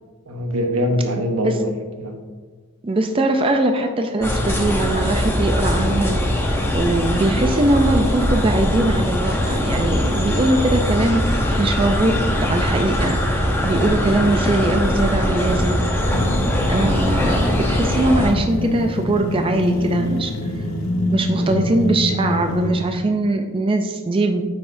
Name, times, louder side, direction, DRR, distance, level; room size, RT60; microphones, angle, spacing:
voice 1, 0.3-2.2 21.3-21.7, equal, 85° right, 4 dB, 1.0 m, -24 dB
voice 2, 2.8-15.8 16.7-20.6 21.1-24.5, right 2 dB, 25° right, 5 dB, 0.4 m, -21 dB
sound 1, 4.2-18.3, left 1 dB, 10° left, 0.8 m, -21 dB
sound 2, 16.1-22.9, left 1 dB, 70° left, 0.7 m, -25 dB
9.2 x 5.7 x 2.6 m, 1.4 s
head